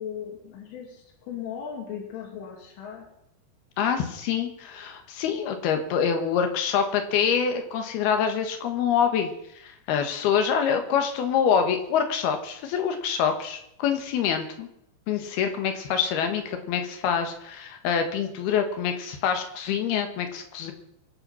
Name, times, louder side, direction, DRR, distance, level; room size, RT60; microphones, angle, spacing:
voice 1, 0.0-3.0, left 8 dB, 80° left, -2 dB, 5.1 m, -37 dB
voice 2, 3.8-14.7 15.1-20.7, left 7 dB, 60° left, 6 dB, 3.1 m, -26 dB
24.5 x 9.1 x 5.7 m, 0.76 s
omnidirectional pair, 5.6 m